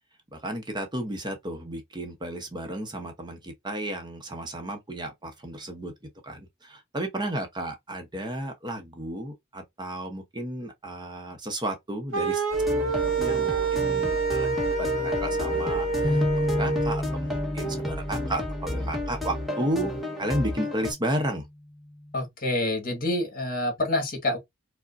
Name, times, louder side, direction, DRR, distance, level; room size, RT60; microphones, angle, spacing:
voice 1, 0.3-5.9 6.2-19.9 20.2-21.4, right 1 dB, 20° right, 0.7 m, -33 dB
sound 1, 12.1-17.0, right 4 dB, 85° right, 1.0 m, -27 dB
sound 2, 12.5-20.9, left 1 dB, ahead, 1.1 m, -32 dB
sound 3, 16.0-20.3 20.8-21.0 21.8-22.3, left 1 dB, 15° left, 2.4 m, -32 dB
voice 2, 22.1-24.4, left 1 dB, 45° left, 1.6 m, -27 dB
4.8 x 2.1 x 2.5 m
head